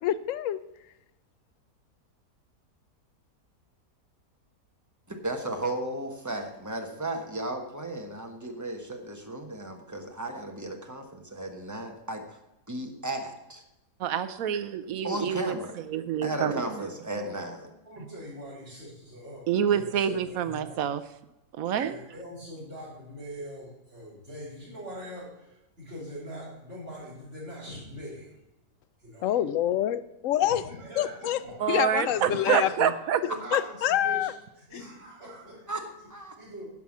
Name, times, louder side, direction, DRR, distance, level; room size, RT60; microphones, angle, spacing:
voice 1, 0.0-0.6 29.2-30.6 31.0-31.4 31.7-32.9 33.5-34.3, left 11 dB, 70° left, 14 dB, 0.7 m, -26 dB
voice 2, 5.1-12.2 12.7-13.6 15.0-15.7 16.2-17.6 31.6-32.3 33.5-33.6 35.7-35.8 36.1-36.3, right 1 dB, 10° right, 3 dB, 1.0 m, -35 dB
voice 3, 14.0-15.6 15.9-16.8 19.5-21.0 21.6-22.0 31.6-33.2, right 9 dB, 65° right, 12 dB, 1.0 m, -27 dB
voice 4, 17.6-20.8 21.8-28.3 29.0-29.4 30.4-32.7 33.2-34.3 34.6-36.1 36.4-36.7, equal, 40° right, -11 dB, 4.6 m, -43 dB
10.5 x 5.7 x 7.2 m, 0.91 s
omnidirectional pair, 1.8 m